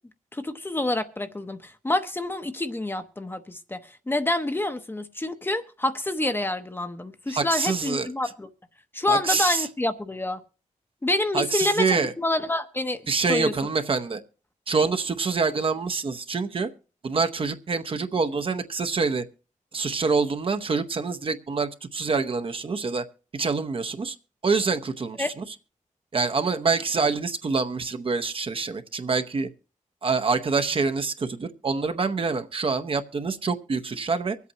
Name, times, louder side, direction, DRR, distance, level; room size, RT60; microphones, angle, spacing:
voice 1, 0.3-8.5 8.9-10.4 11.0-13.0 13.3-13.5 25.2-25.3, left 2 dB, 15° left, 8 dB, 0.8 m, -27 dB
voice 2, 7.3-8.1 9.1-9.7 11.3-12.1 13.1-14.2 14.7-16.7 17.0-19.2 19.7-23.0 23.3-24.2 24.4-25.4 26.1-29.5 30.0-34.4, right 4 dB, 45° right, 9 dB, 0.8 m, -26 dB
24.0 x 8.3 x 2.9 m, 0.35 s
wide cardioid pair, 130°, 13 cm